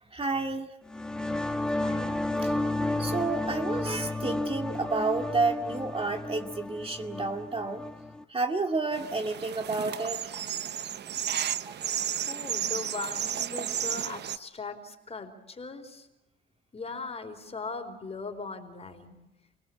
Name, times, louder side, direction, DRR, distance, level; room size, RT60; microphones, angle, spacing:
voice 1, 0.1-0.7 2.4-2.5 3.0-7.8 8.3-10.2 11.7-11.8, right 3 dB, 30° right, 3 dB, 2.2 m, -30 dB
sound 1, 0.9-8.2, left 2 dB, 5° left, 1.5 m, -32 dB
voice 2, 1.8-2.1 12.3-16.1 16.7-19.2, left 4 dB, 30° left, 5 dB, 4.3 m, -39 dB
sound 2, 8.9-14.4, right 9 dB, 60° right, 0.9 m, -33 dB
29.5 x 18.5 x 8.5 m, 1.0 s
cardioid pair, 90°, 20 cm